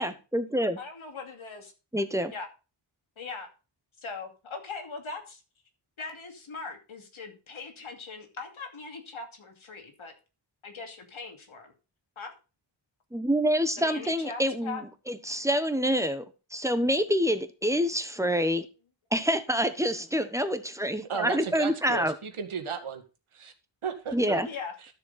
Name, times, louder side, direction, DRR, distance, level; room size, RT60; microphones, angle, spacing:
voice 1, 0.0-0.8 1.9-2.3 13.1-16.2 16.5-18.7 19.1-22.1 24.1-24.5, equal, 5° right, 1.0 m, -27 dB
voice 2, 0.8-1.7 2.3-2.5 3.2-3.5 4.0-5.4 6.0-10.1 10.6-11.7 12.2-12.3 13.8-14.8 24.4-24.7, left 4 dB, 75° left, 2.6 m, -40 dB
voice 3, 21.1-23.0 23.3-23.5 23.8-24.4, right 6 dB, 90° right, 2.0 m, -34 dB
12.5 x 6.9 x 4.1 m
wide cardioid pair, 120°, 48 cm